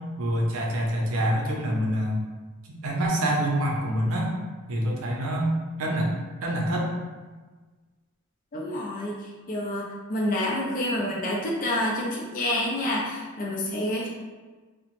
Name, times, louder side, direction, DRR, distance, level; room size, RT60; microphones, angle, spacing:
voice 1, 0.2-2.2 2.8-4.3 4.7-5.5 5.8-6.1 6.4-6.9, right 1 dB, 70° right, -1 dB, 0.6 m, -26 dB
voice 2, 8.5-9.2 9.5-14.1, left 1 dB, 40° left, -3 dB, 0.4 m, -28 dB
2.9 x 2.0 x 2.9 m, 1.3 s
head